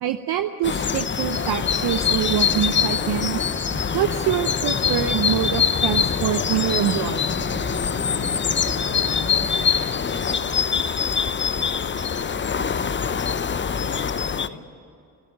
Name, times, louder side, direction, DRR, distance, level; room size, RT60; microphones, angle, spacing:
voice 1, 0.0-3.4 3.9-7.2, right 11 dB, 55° right, 9 dB, 1.0 m, -25 dB
sound 1, 0.6-14.5, left 7 dB, 25° left, 0.8 m, -24 dB
sound 2, 2.0-9.8, right 4 dB, 25° right, 1.9 m, -39 dB
sound 3, 3.5-12.5, equal, 5° left, 4.4 m, -46 dB
voice 2, 8.8-13.3 13.5-13.8 14.1-14.6, left 2 dB, 45° left, 4 dB, 5.0 m, -43 dB
25.5 x 13.0 x 9.7 m, 2.5 s
hypercardioid pair, 55°, 46 cm